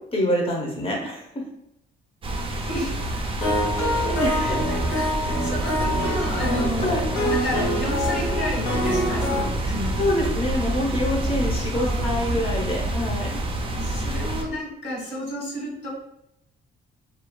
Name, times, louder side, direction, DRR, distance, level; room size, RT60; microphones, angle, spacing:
voice 1, 0.1-1.2 3.7-4.5 6.8-7.0 9.4-13.4, left 1 dB, 30° left, -1 dB, 0.8 m, -26 dB
sound 1, 2.2-14.4, right 1 dB, 25° right, 0.4 m, -27 dB
voice 2, 2.7-3.1 4.3-10.3 11.7-12.4 13.7-15.9, equal, 60° left, -3 dB, 1.1 m, -32 dB
sound 2, 3.4-9.4, equal, 85° left, 0.8 m, -26 dB
2.4 x 2.3 x 2.2 m, 0.77 s
cardioid pair, 90°, 20 cm